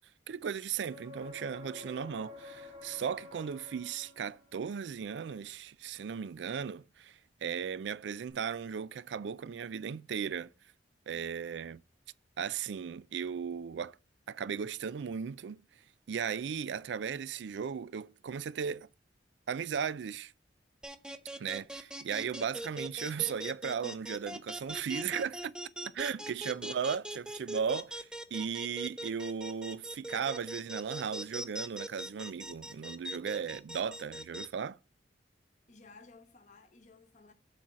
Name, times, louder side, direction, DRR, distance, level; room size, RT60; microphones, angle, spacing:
voice 1, 0.3-10.5 11.1-11.8 12.4-14.0 14.3-15.6 16.1-18.9 19.5-20.3 21.4-25.5 25.9-34.8, right 7 dB, 80° right, 0.4 m, -36 dB
sound 1, 0.8-4.6 8.3-8.4, left 2 dB, 35° right, 2.1 m, -50 dB
sound 2, 20.8-34.5, right 1 dB, 5° right, 0.6 m, -40 dB
voice 2, 25.8-26.7 35.7-37.3, left 3 dB, 45° left, 1.1 m, -57 dB
7.5 x 4.2 x 6.1 m
head